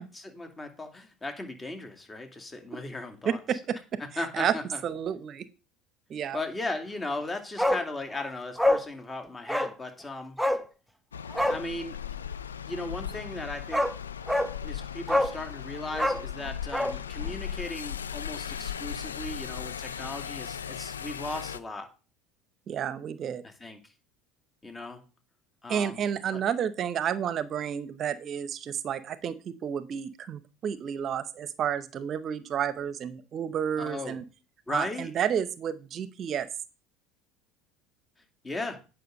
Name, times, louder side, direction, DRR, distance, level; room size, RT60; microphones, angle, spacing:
voice 1, 0.0-3.6 4.2-4.8 6.3-10.4 11.5-12.0 12.7-13.8 14.6-21.9 23.4-23.8 24.6-25.0 25.6-26.0 26.3-26.4 33.8-34.2 34.7-35.1 38.4-38.8, left 2 dB, 20° left, 5 dB, 2.4 m, -37 dB
voice 2, 3.3-3.8 4.3-4.6 4.8-5.5 6.1-6.4 22.7-23.4 25.7-34.2 34.7-36.5, right 8 dB, 45° right, 14 dB, 0.7 m, -31 dB
Bark, 7.6-7.9 8.1-8.2 8.6-8.9 9.5-9.7 10.4-10.6 11.3-11.6 13.2-13.3 13.7-13.9 14.3-14.5 15.1-15.4 15.9-17.0 17.2-17.3, left 1 dB, ahead, 1.0 m, -25 dB
sound 1, 11.1-21.6, left 8 dB, 90° left, 0.5 m, -37 dB
9.3 x 5.8 x 5.2 m, 0.32 s
hypercardioid pair, 70°, 0 cm